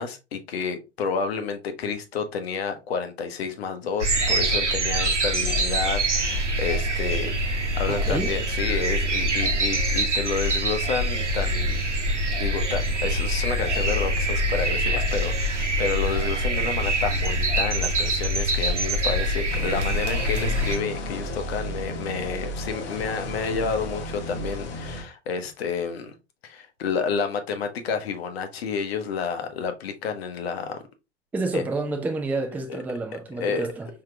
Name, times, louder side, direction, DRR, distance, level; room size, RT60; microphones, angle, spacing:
voice 1, 0.0-11.8 12.2-26.1 26.4-30.8 31.5-31.6 32.7-32.8 33.1-33.7, left 5 dB, 60° left, 0.8 m, -30 dB
sound 1, 4.0-20.8, right 1 dB, 80° right, 0.9 m, -24 dB
voice 2, 7.9-8.3 31.3-33.9, right 3 dB, 5° right, 0.4 m, -29 dB
sound 2, 19.5-25.0, equal, 30° left, 1.0 m, -33 dB
5.7 x 2.9 x 2.3 m
figure-of-eight pair, 85°, 35 cm